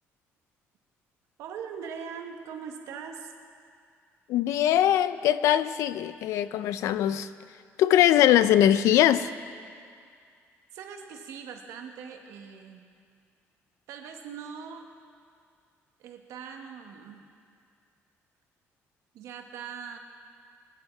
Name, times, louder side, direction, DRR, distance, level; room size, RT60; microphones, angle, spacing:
voice 1, 1.4-3.3 10.7-12.8 13.9-14.9 16.0-17.2 19.1-20.0, right 7 dB, 85° right, 4 dB, 1.4 m, -41 dB
voice 2, 4.3-7.3 7.8-9.3, left 11 dB, 80° left, 14 dB, 0.5 m, -21 dB
22.5 x 9.7 x 4.6 m, 2.2 s
cardioid pair, 175°, 5 cm